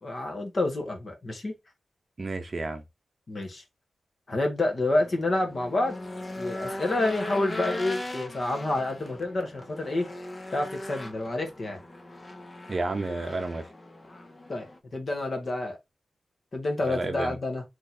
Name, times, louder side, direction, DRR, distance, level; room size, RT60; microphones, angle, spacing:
voice 1, 0.0-1.5 3.3-3.6 4.3-6.0 6.4-10.1 10.5-11.8 14.5-14.7 14.9-15.8 16.5-17.6, left 2 dB, 45° left, 1.5 m, -28 dB
voice 2, 2.2-2.8 12.7-13.7 16.8-17.4, right 2 dB, 35° right, 0.7 m, -31 dB
Race car auto racing / Engine, 4.7-14.8, left 1 dB, 30° left, 0.8 m, -39 dB
3.7 x 3.1 x 4.2 m
wide cardioid pair, 115°, 0 cm